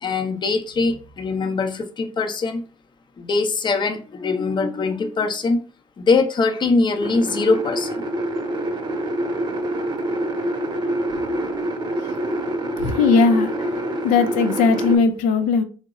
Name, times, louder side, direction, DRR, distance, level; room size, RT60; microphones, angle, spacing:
voice 1, 0.0-2.6 3.2-5.6 6.1-8.0, left 3 dB, 35° left, 0.6 m, -22 dB
sound 1, 7.0-15.0, right 1 dB, 35° right, 0.8 m, -26 dB
voice 2, 12.8-13.5 14.0-15.6, left 4 dB, 80° left, 0.5 m, -18 dB
2.9 x 2.0 x 3.6 m
supercardioid pair, 70°, 13 cm